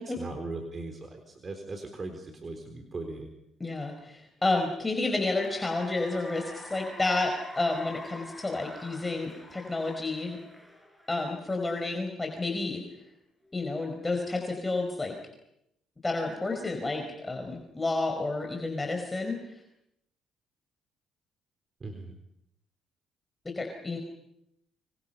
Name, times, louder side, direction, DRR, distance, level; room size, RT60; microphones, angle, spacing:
voice 1, 0.2-3.3 21.8-22.1, right 3 dB, 35° right, 5 dB, 4.0 m, -39 dB
voice 2, 3.6-10.4 11.1-12.8 13.5-15.1 16.0-19.6 23.4-24.0, left 2 dB, 20° left, 3 dB, 4.8 m, -30 dB
Cheering / Applause, 4.8-11.5, left 1 dB, ahead, 4.6 m, -47 dB
30.0 x 27.0 x 5.7 m, 0.80 s
cardioid pair, 85°, 0 cm